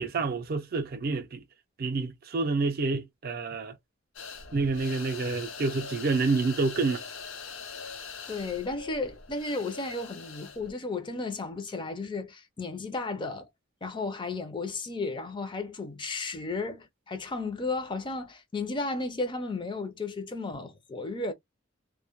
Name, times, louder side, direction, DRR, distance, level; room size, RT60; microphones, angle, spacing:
voice 1, 0.0-1.4 1.8-3.7 4.5-7.0, right 3 dB, 50° right, 0.4 m, -28 dB
sound 1, 4.2-10.7, left 5 dB, 70° left, 0.7 m, -42 dB
voice 2, 8.3-13.5 13.8-21.3, left 3 dB, 25° left, 0.4 m, -34 dB
2.1 x 2.0 x 2.8 m
head